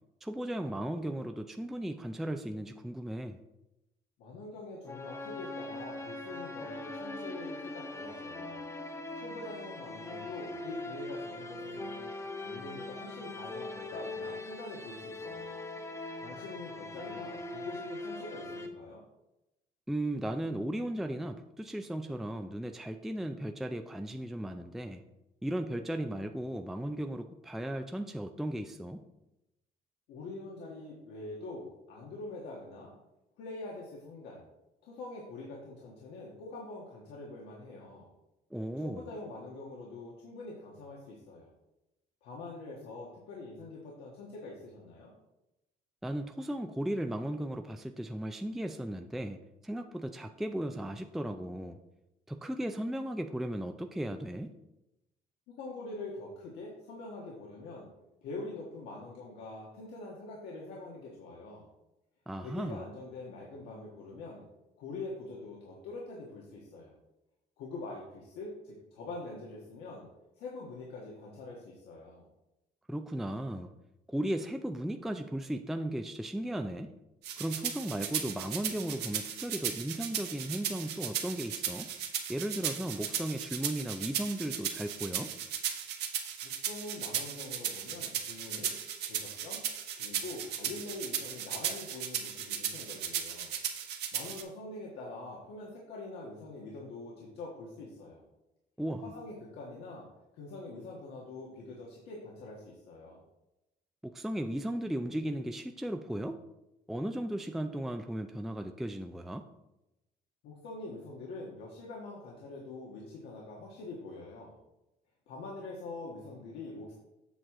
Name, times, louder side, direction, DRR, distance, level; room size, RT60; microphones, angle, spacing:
voice 1, 0.2-3.4 19.9-25.0 25.4-29.0 38.5-39.1 46.0-51.8 52.3-54.5 62.3-62.8 72.9-73.7 74.1-76.9 77.4-81.9 82.3-85.3 98.8-99.1 104.0-106.4 106.9-109.4, right 1 dB, ahead, 6 dB, 0.4 m, -36 dB
voice 2, 4.2-8.6 9.2-12.1 12.4-15.5 16.1-19.0 30.1-32.9 33.4-34.5 34.8-38.1 38.8-41.5 42.2-45.1 55.5-57.9 58.2-61.7 62.4-64.5 64.8-66.9 67.6-70.1 70.4-72.2 86.4-88.8 89.0-89.6 90.0-93.5 94.1-98.2 99.0-100.1 100.3-103.2 110.4-114.6 115.3-116.9, left 2 dB, 85° left, -3 dB, 1.5 m, -44 dB
sound 1, 4.8-18.7, left 2 dB, 15° left, 0.9 m, -41 dB
sound 2, 77.2-94.4, right 9 dB, 80° right, 1.1 m, -36 dB
8.0 x 6.2 x 3.7 m, 0.93 s
cardioid pair, 110°, 17 cm